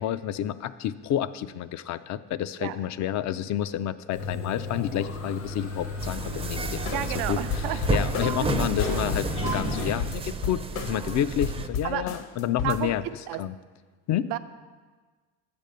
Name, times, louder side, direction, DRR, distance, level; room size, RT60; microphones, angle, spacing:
voice 1, 0.0-7.4 7.7-13.0 13.4-13.5 14.1-14.3, left 11 dB, 45° left, 14 dB, 0.4 m, -29 dB
sound 1, 4.1-9.9, left 3 dB, 85° left, 2.7 m, -34 dB
sound 2, 6.0-11.7, right 4 dB, 15° right, 0.5 m, -31 dB
sound 3, 6.9-7.2 7.5-8.5 8.8-11.1 11.4-12.8, left 6 dB, 65° left, 1.1 m, -33 dB
voice 2, 6.9-7.9 8.2-8.7 11.8-12.0 12.6-12.9 13.3-13.4 14.3-14.4, right 13 dB, 80° right, 11 dB, 0.6 m, -31 dB
8.3 x 5.3 x 6.6 m, 1.4 s
supercardioid pair, 85°, 40 cm